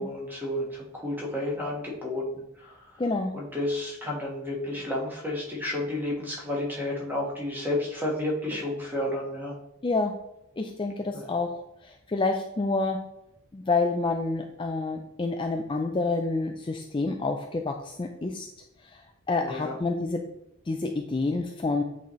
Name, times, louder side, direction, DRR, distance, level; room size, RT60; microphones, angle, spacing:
voice 1, 0.0-2.2 2.6-2.8 3.3-9.5 11.1-11.2 19.4-19.7, left 1 dB, 10° right, -3 dB, 1.4 m, -31 dB
voice 2, 3.0-3.3 9.8-10.1 10.6-11.5 11.8-13.0 13.5-18.5 18.9-19.0 19.3-20.2 20.7-21.8, left 3 dB, 25° left, 3 dB, 0.4 m, -28 dB
8.1 x 4.2 x 3.1 m, 0.83 s
head